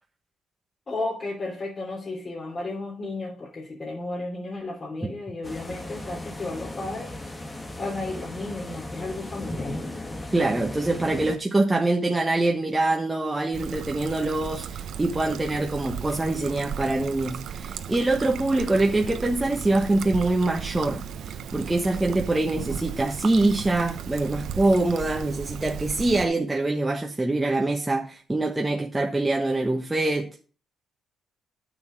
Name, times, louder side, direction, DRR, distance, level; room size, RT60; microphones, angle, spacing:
voice 1, 0.9-7.2 7.8-9.8, left 2 dB, 35° left, 3.2 m, -33 dB
sound 1, 5.4-11.4, left 1 dB, 20° left, 1.8 m, -36 dB
voice 2, 10.3-30.3, right 2 dB, 15° right, 1.3 m, -24 dB
Trickle dribble, 13.5-26.3, right 8 dB, 75° right, 1.0 m, -36 dB
9.2 x 7.2 x 5.3 m
cardioid pair, 90°, 0 cm